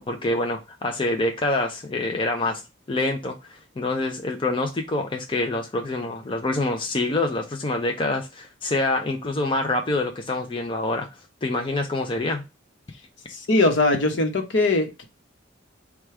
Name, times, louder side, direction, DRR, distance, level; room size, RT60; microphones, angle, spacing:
voice 1, 0.1-2.6 2.9-11.1 11.4-12.4, left 2 dB, 25° left, 0.5 m, -26 dB
voice 2, 13.3-15.0, left 2 dB, 65° left, 1.0 m, -21 dB
4.4 x 2.3 x 4.8 m
head